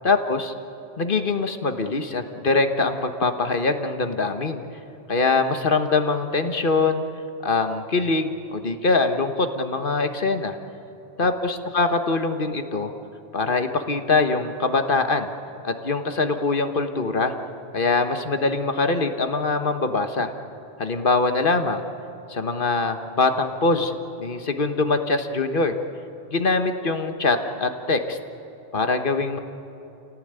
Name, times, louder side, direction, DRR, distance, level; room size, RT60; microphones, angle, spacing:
voice 1, 0.0-0.5 1.0-4.6 5.1-7.0 7.4-10.6 11.2-12.9 13.3-15.3 15.6-17.3 17.7-20.3 20.8-21.8 22.3-25.7 26.3-28.2 28.7-29.4, left 3 dB, 60° left, 7 dB, 1.5 m, -23 dB
28.5 x 17.5 x 9.0 m, 3.0 s
omnidirectional pair, 1.0 m